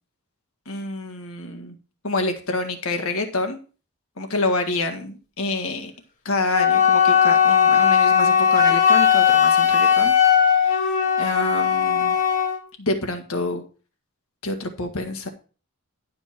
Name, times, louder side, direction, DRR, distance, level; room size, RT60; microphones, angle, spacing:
voice 1, 0.7-1.8 2.0-3.6 4.2-5.9 6.2-10.1 10.4-10.9 11.2-12.2 12.8-13.6 14.4-15.3, left 2 dB, 75° left, 5 dB, 1.7 m, -27 dB
Wind instrument woodwind instrument, 6.5-12.6, left 7 dB, 35° left, 1.6 m, -17 dB
11.5 x 5.5 x 4.5 m, 0.36 s
head